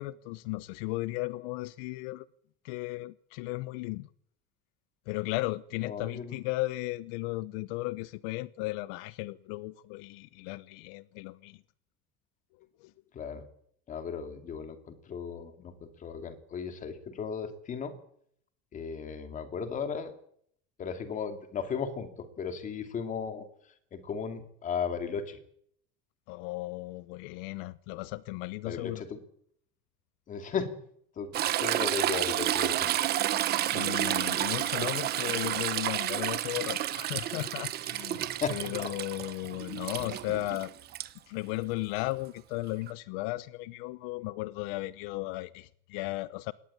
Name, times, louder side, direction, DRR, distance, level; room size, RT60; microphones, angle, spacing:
voice 1, 0.0-2.3 2.6-4.1 5.1-11.6 12.8-12.9 26.3-29.0 33.7-38.2 38.5-40.7 41.3-46.5, left 20 dB, 75° left, 0.8 m, -35 dB
voice 2, 5.8-6.4 13.1-13.4 13.9-17.9 18.7-20.1 20.8-23.5 23.9-25.4 28.6-29.2 30.3-30.7 31.2-32.9 38.4-38.9, left 6 dB, 25° left, 2.6 m, -36 dB
Toilet flush / Trickle dribble, 31.3-41.1 42.9-43.0, right 12 dB, 35° right, 1.1 m, -30 dB
21.5 x 18.5 x 8.5 m
cardioid pair, 170°, 29 cm